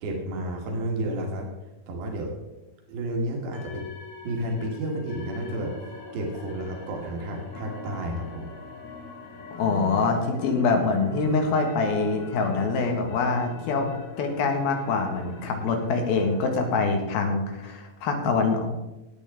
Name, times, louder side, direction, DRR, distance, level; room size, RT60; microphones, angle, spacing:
voice 1, 0.0-1.5 1.9-2.3 2.9-3.8 4.3-5.7 6.1-8.5 15.5-15.7, right 1 dB, 80° right, 0 dB, 3.5 m, -31 dB
sound 1, 3.5-16.9, left 4 dB, 50° left, 1.6 m, -42 dB
voice 2, 9.6-13.9 14.2-18.7, left 4 dB, 80° left, 3 dB, 3.5 m, -25 dB
17.5 x 8.9 x 3.6 m, 1.0 s
omnidirectional pair, 4.3 m